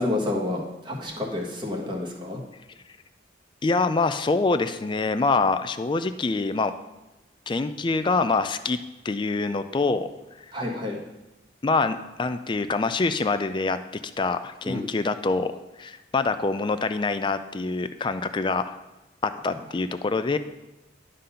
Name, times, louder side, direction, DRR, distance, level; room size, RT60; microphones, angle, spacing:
voice 1, 0.0-2.4 10.5-11.0 14.6-14.8, left 2 dB, 25° right, -1 dB, 1.4 m, -29 dB
voice 2, 3.6-6.7 7.5-8.8 9.0-10.1 10.4-10.5 11.6-13.8 14.2-15.5 15.8-18.8 19.2-20.4, left 3 dB, 25° left, 10 dB, 0.3 m, -25 dB
11.5 x 3.9 x 5.6 m, 1.0 s
head